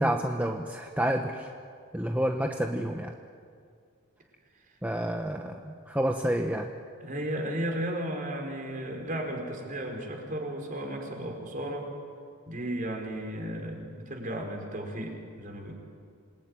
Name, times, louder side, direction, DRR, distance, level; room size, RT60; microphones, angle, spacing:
voice 1, 0.0-1.5 1.9-3.1 4.8-6.7, right 1 dB, 5° right, 3 dB, 1.0 m, -29 dB
voice 2, 7.0-11.9 12.5-15.7, right 1 dB, 40° right, 2 dB, 5.1 m, -34 dB
27.5 x 21.0 x 9.9 m, 2.2 s
head